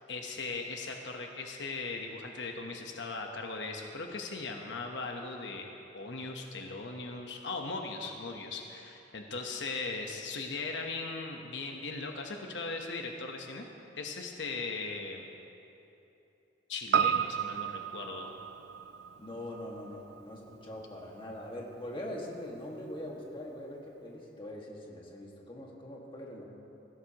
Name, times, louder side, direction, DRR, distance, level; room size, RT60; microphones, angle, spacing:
voice 1, 0.1-5.6 5.9-13.7 14.0-15.3 16.7-18.3, left 3 dB, 80° left, 2 dB, 1.0 m, -38 dB
Piano, 16.9-21.4 21.7-21.8, right 8 dB, 60° right, 0.3 m, -33 dB
voice 2, 19.2-26.4, left 1 dB, 30° left, -2 dB, 1.9 m, -42 dB
20.5 x 16.0 x 3.0 m, 3.0 s
head